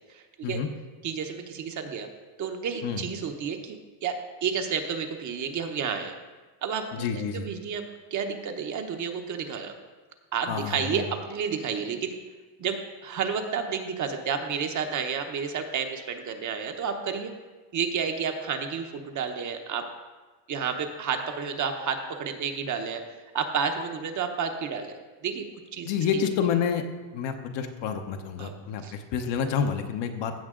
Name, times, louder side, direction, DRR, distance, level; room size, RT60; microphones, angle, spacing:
voice 1, 0.1-0.6 1.0-2.1 2.4-4.2 4.4-6.1 6.6-7.8 8.1-9.7 10.3-12.1 12.6-17.3 17.7-19.9 20.5-23.0 23.3-24.9 25.2-25.4 25.7-26.3 28.4-28.5 28.8-28.9, right 6 dB, 40° right, 5 dB, 0.9 m, -31 dB
voice 2, 6.9-7.5 10.5-11.0 25.8-26.8 27.1-30.3, left 7 dB, 60° left, 5 dB, 1.0 m, -28 dB
15.0 x 5.8 x 3.8 m, 1.3 s
cardioid pair, 140°, 47 cm